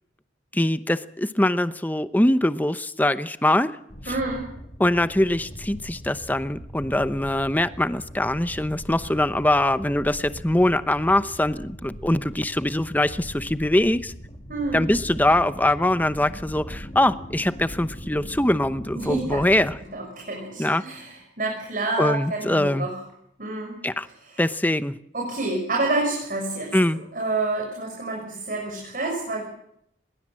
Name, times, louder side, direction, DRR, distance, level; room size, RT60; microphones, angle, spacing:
voice 1, 0.5-3.8 4.8-14.1 14.7-19.7 20.6-20.8 22.0-22.9 23.8-24.1 24.4-25.0 26.7-27.0, left 1 dB, 10° left, 12 dB, 0.8 m, -22 dB
sound 1, 3.9-19.8, equal, 30° left, 2.9 m, -40 dB
voice 2, 4.1-4.5 14.5-14.9 18.9-19.4 19.9-23.0 23.4-23.8 24.2-24.4 25.1-26.8 27.1-29.4, right 2 dB, 50° right, 0 dB, 6.3 m, -28 dB
22.0 x 21.5 x 7.6 m, 0.74 s
head